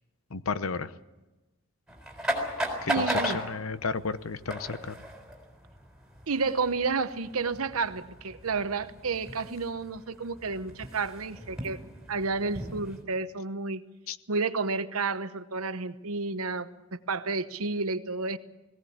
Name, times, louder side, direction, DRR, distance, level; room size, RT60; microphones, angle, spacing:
voice 1, 0.3-0.9 2.8-5.0 14.1-14.2, left 4 dB, 75° left, 14 dB, 0.9 m, -32 dB
sound 1, 1.9-13.0, equal, 5° right, 4.0 m, -37 dB
voice 2, 2.9-3.4 6.3-11.8 12.1-13.8 14.3-16.7 17.1-18.4, right 4 dB, 85° right, 12 dB, 1.0 m, -31 dB
19.0 x 17.0 x 8.7 m, 1.1 s
head